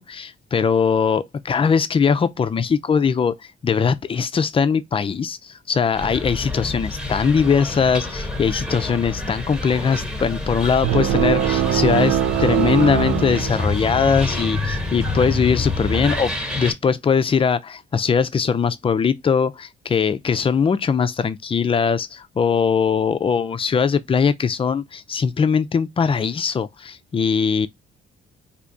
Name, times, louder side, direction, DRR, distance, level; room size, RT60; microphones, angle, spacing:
voice 1, 0.0-3.3 3.6-27.7, left 6 dB, 30° left, 0.4 m, -21 dB
sound 1, 5.9-16.7, left 2 dB, 5° right, 1.0 m, -27 dB
sound 2, 10.8-14.2, right 11 dB, 70° right, 0.4 m, -22 dB
3.3 x 2.8 x 2.5 m
cardioid pair, 90°, 20 cm